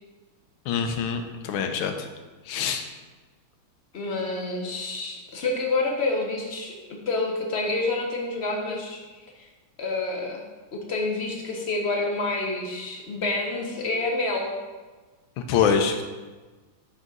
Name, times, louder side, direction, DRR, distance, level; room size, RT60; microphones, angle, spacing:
voice 1, 0.7-2.1 2.5-2.8 15.4-16.0, left 6 dB, 85° left, 6 dB, 1.5 m, -25 dB
voice 2, 3.9-6.8 7.1-9.0 9.8-10.4 10.7-14.5, left 2 dB, 55° left, 0 dB, 0.7 m, -28 dB
6.0 x 3.9 x 5.3 m, 1.3 s
omnidirectional pair, 2.2 m